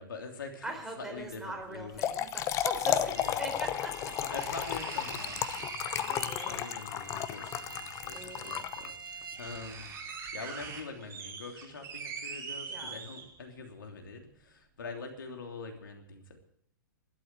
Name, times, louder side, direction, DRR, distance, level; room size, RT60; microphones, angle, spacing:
voice 1, 0.0-0.7 1.0-2.1 3.1-3.6 4.2-5.7 6.5-16.4, left 4 dB, 70° left, 3 dB, 3.1 m, -44 dB
voice 2, 0.6-3.9 5.9-6.7 8.1-8.7 12.7-13.0, right 2 dB, 5° right, 1 dB, 4.0 m, -41 dB
Trickle dribble / Fill (with liquid), 1.7-9.2, left 11 dB, 25° left, 0.8 m, -33 dB
sound 1, 1.9-2.0 3.5-3.6 4.3-6.7 8.1-8.2 8.8-8.9 9.1-13.6 14.0-14.1, right 5 dB, 25° right, 4.0 m, -43 dB
sound 2, 3.1-9.7, right 5 dB, 85° right, 0.9 m, -47 dB
12.5 x 11.5 x 7.7 m, 0.70 s
figure-of-eight pair, 115°, 11 cm